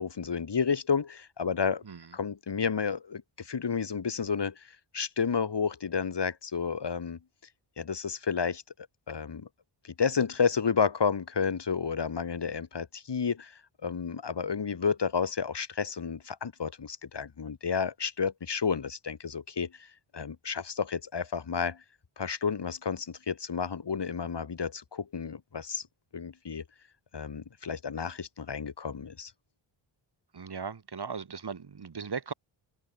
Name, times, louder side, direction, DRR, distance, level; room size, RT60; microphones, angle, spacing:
voice 1, 0.0-1.8 2.1-7.2 7.8-8.6 9.1-9.5 9.8-21.8 22.2-25.9 26.1-26.6 27.1-29.3, left 6 dB, 55° left, 4.4 m, -31 dB
voice 2, 1.8-2.2 30.3-32.3, right 5 dB, 50° right, 4.3 m, -38 dB
cardioid pair, 70°, 49 cm